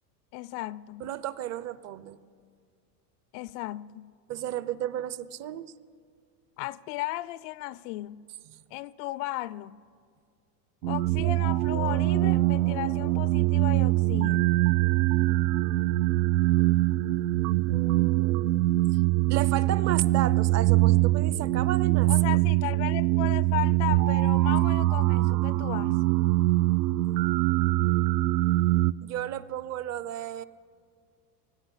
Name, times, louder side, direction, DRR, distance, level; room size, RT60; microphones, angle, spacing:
voice 1, 0.3-1.1 3.3-4.2 6.6-8.3 8.7-9.8 10.9-14.6 22.1-26.0, left 17 dB, 50° left, 0.5 m, -35 dB
voice 2, 1.0-2.2 4.3-5.7 17.7-18.6 19.3-22.1 29.0-30.4, right 11 dB, 35° right, 0.6 m, -33 dB
sound 1, 10.8-28.9, right 18 dB, 80° right, 0.6 m, -23 dB
16.5 x 16.0 x 9.8 m
supercardioid pair, 125°, 49 cm